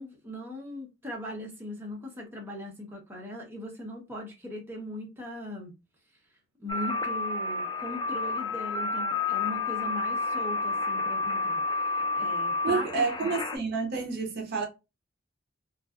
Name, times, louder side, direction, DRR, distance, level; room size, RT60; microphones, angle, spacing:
voice 1, 0.0-5.7 6.6-13.3, left 1 dB, 10° right, 0.7 m, -39 dB
sound 1, 6.7-13.6, left 3 dB, 20° left, 0.3 m, -30 dB
voice 2, 12.6-14.7, right 4 dB, 50° right, 0.6 m, -29 dB
2.6 x 2.2 x 2.3 m
head